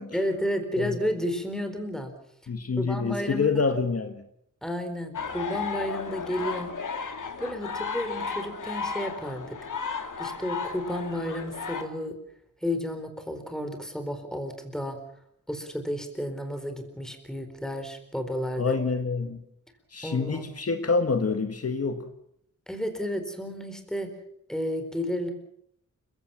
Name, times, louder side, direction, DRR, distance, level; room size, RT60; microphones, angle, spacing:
voice 1, 0.1-2.1 2.8-3.5 4.6-6.7 7.4-9.6 10.2-12.2 12.6-15.0 15.5-18.8 20.0-20.5 22.7-24.1 24.5-25.3, equal, ahead, 6 dB, 4.2 m, -32 dB
voice 2, 2.5-4.2 18.6-19.4 19.9-22.1, left 4 dB, 50° left, 7 dB, 1.8 m, -27 dB
sound 1, 5.1-11.8, left 5 dB, 75° left, 2.6 m, -34 dB
29.5 x 16.5 x 7.4 m, 0.70 s
wide cardioid pair, 145°, 31 cm